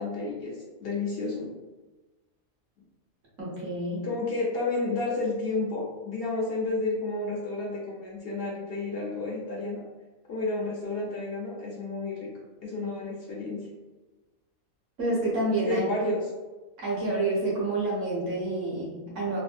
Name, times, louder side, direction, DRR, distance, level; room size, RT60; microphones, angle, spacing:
voice 1, 0.0-1.5 4.0-9.8 10.3-12.3 12.6-13.7 15.6-16.2, left 3 dB, 60° left, -4 dB, 0.6 m, -31 dB
voice 2, 3.4-4.0 15.0-15.9 16.8-19.4, right 2 dB, 60° right, -7 dB, 1.5 m, -28 dB
3.4 x 2.1 x 2.5 m, 1.2 s
omnidirectional pair, 1.4 m